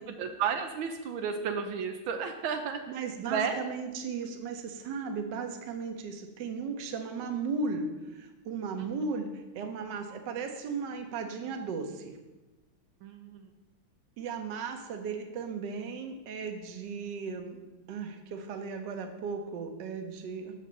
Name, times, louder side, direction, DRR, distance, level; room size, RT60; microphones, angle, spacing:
voice 1, 0.1-2.8 3.3-3.6 8.8-8.9 13.0-13.5, right 7 dB, 80° right, 5 dB, 1.4 m, -32 dB
voice 2, 2.9-9.3 9.5-12.1 14.2-17.6 17.9-20.5, right 5 dB, 65° right, 5 dB, 1.4 m, -36 dB
6.3 x 5.1 x 6.8 m, 1.1 s
omnidirectional pair, 2.2 m